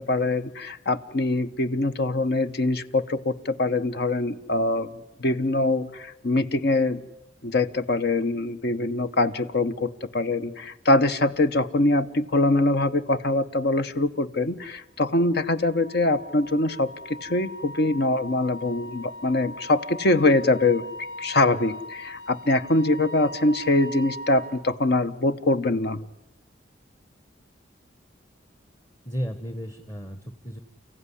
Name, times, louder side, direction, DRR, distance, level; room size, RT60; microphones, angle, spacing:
voice 1, 0.0-4.9 5.2-7.0 7.4-16.9 17.2-20.8 21.2-26.0, left 2 dB, 60° left, 11 dB, 1.0 m, -23 dB
Wind instrument woodwind instrument, 15.1-24.6, equal, 85° left, 5.4 m, -40 dB
voice 2, 29.0-30.6, equal, 20° left, 9 dB, 1.0 m, -33 dB
30.0 x 15.5 x 9.9 m, 0.97 s
head